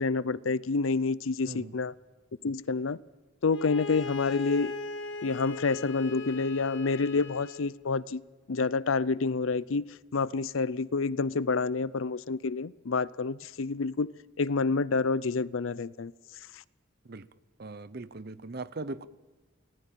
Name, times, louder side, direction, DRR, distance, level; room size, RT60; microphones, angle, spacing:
voice 1, 0.0-1.9 2.4-3.0 3.4-4.7 5.2-8.2 8.5-14.1 14.4-16.1, left 4 dB, 85° left, 0.6 m, -28 dB
Bowed string instrument, 3.5-7.7, left 4 dB, 70° left, 1.4 m, -38 dB
voice 2, 17.6-19.1, right 3 dB, 50° right, 0.8 m, -39 dB
25.0 x 18.5 x 7.6 m
head